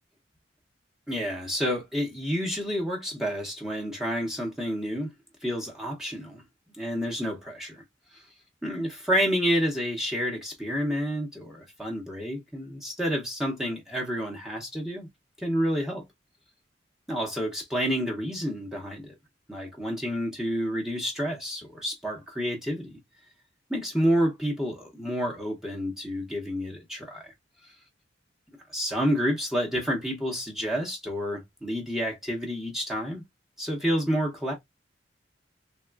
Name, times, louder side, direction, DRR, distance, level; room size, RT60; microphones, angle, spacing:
voice 1, 1.1-5.1 5.4-6.4 6.8-7.8 8.6-15.1 15.4-16.0 17.1-19.1 19.5-23.0 23.7-27.3 28.7-33.2 33.6-34.5, equal, 5° right, 0.7 m, -29 dB
3.5 x 2.3 x 2.2 m
head